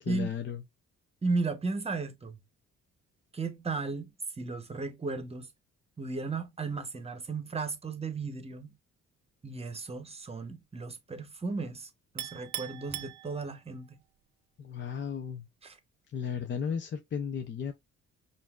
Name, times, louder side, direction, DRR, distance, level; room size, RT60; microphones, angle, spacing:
voice 1, 0.0-0.6 14.6-15.5 16.1-17.7, left 7 dB, 40° left, 0.6 m, -35 dB
voice 2, 1.2-2.4 3.3-4.1 4.4-5.5 6.0-8.7 9.4-11.9 12.1-14.0 15.6-15.8, right 3 dB, 20° right, 0.9 m, -35 dB
Chink clink, 12.2-13.8, right 14 dB, 75° right, 0.5 m, -40 dB
5.6 x 2.6 x 2.3 m
cardioid pair, 90°, 30 cm